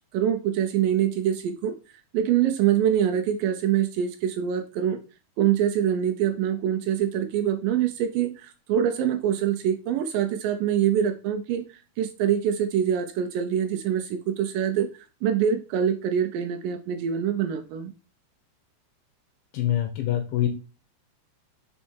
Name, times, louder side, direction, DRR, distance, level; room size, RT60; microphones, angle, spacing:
voice 1, 0.1-5.0 5.4-14.9 15.2-17.9, right 9 dB, 90° right, 6 dB, 1.9 m, -25 dB
voice 2, 19.5-20.5, left 12 dB, 75° left, 5 dB, 2.1 m, -25 dB
5.5 x 4.7 x 4.4 m, 0.33 s
omnidirectional pair, 4.7 m